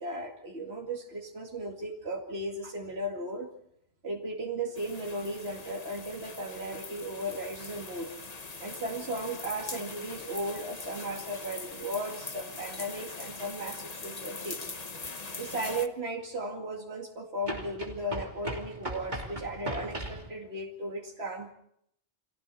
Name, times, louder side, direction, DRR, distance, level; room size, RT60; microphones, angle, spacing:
voice 1, 0.0-3.5 4.0-8.1 8.6-14.8 15.4-21.5, right 1 dB, 75° right, 0 dB, 2.7 m, -36 dB
sound 1, 4.7-15.9, left 4 dB, 40° left, 1.3 m, -42 dB
sound 2, 15.0-15.1 17.4-20.3, right 1 dB, 45° right, 3.2 m, -37 dB
30.0 x 23.5 x 4.2 m, 0.70 s
omnidirectional pair, 1.1 m